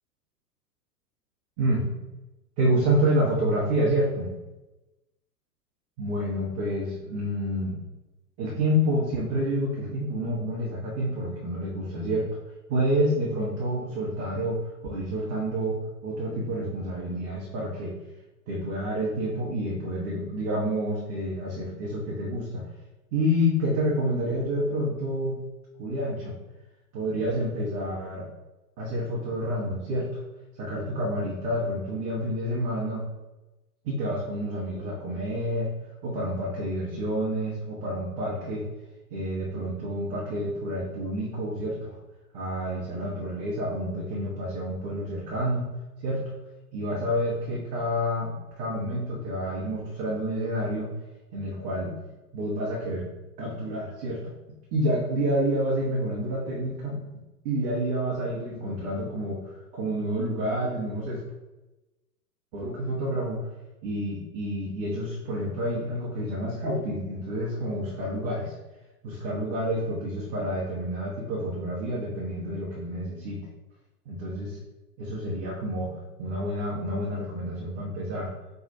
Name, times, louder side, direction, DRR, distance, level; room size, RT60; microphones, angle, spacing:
voice 1, 2.6-4.3 6.0-7.7 8.4-12.2 12.7-17.9 18.5-22.6 23.1-25.4 25.8-26.3 26.9-28.3 28.8-30.2 30.5-33.0 33.8-35.7 36.0-38.6 39.1-42.0 42.3-45.7 46.0-46.2 46.7-50.9 51.3-52.0 52.3-53.1 53.4-54.3 54.7-57.0 57.4-61.2 62.5-63.5 63.8-68.6 69.0-73.4 74.1-74.6 75.0-78.3, equal, 25° right, -5 dB, 0.8 m, -28 dB
4.5 x 2.3 x 4.0 m, 1.1 s
figure-of-eight pair, 105°, 49 cm